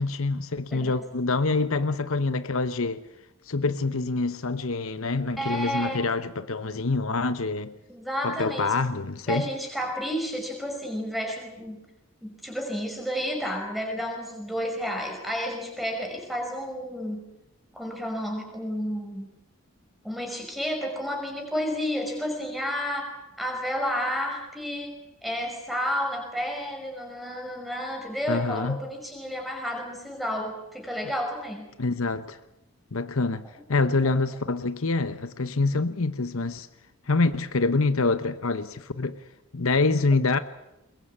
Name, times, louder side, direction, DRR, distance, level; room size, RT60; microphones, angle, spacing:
voice 1, 0.0-3.0 3.5-7.7 8.2-9.5 28.3-28.8 31.8-32.4 32.9-36.7 37.1-39.2 39.5-40.4, left 3 dB, 70° left, 0.9 m, -26 dB
voice 2, 5.4-6.0 7.9-8.7 9.3-11.8 12.2-17.2 17.7-19.3 20.0-31.7, equal, ahead, 5.5 m, -31 dB
22.0 x 21.5 x 8.7 m
head